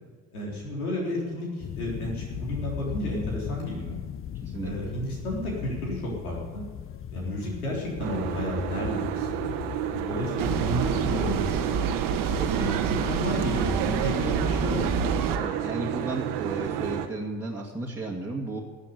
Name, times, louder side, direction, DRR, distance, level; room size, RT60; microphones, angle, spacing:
voice 1, 0.3-4.0 4.6-6.6 7.1-9.5 9.9-11.8 12.5-15.1, left 1 dB, 85° left, -2 dB, 3.9 m, -32 dB
sound 1, 1.6-10.6, left 9 dB, 30° left, 0.6 m, -38 dB
voice 2, 4.4-4.7 12.4-12.8 15.4-18.6, right 2 dB, 5° right, -4 dB, 2.4 m, -34 dB
Boat Water vehicle, 8.0-17.1, right 10 dB, 70° right, 1.3 m, -31 dB
sound 2, 10.4-15.4, right 6 dB, 50° right, 1.4 m, -28 dB
14.0 x 8.3 x 9.7 m, 1.4 s
hypercardioid pair, 60°, 42 cm